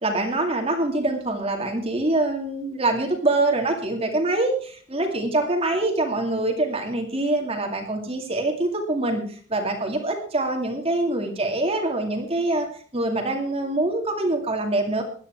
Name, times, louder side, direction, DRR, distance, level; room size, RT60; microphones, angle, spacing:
voice 1, 0.0-9.2 9.5-12.7 12.9-15.0, right 2 dB, 30° right, 2 dB, 2.4 m, -24 dB
16.5 x 11.5 x 4.6 m, 0.44 s
head